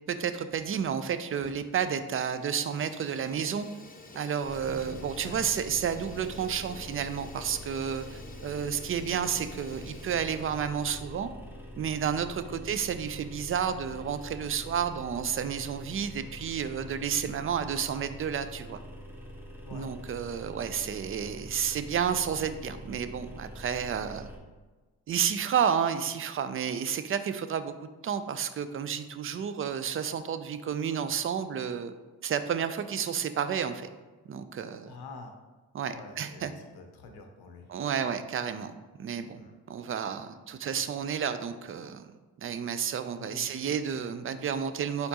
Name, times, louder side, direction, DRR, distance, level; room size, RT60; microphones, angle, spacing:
voice 1, 0.1-3.7 4.1-11.3 11.8-18.8 19.7-24.3 25.1-27.7 28.0-31.9 32.2-33.9 34.3-34.9 35.7-36.5 37.7-38.7 39.0-39.4 39.7-42.1 42.4-45.1, right 7 dB, 35° right, 11 dB, 0.4 m, -31 dB
Fire, 1.3-1.8 2.1-10.9, left 3 dB, 25° left, 0.7 m, -50 dB
sound 1, 4.4-24.4, equal, 5° right, 1.0 m, -45 dB
voice 2, 4.6-5.5 12.5-12.7 19.6-19.9 34.9-35.3 35.9-37.7 39.3-39.5 43.2-43.5, left 3 dB, 85° left, 4 dB, 0.7 m, -47 dB
4.3 x 3.9 x 2.9 m, 1.2 s
cardioid pair, 60°, 37 cm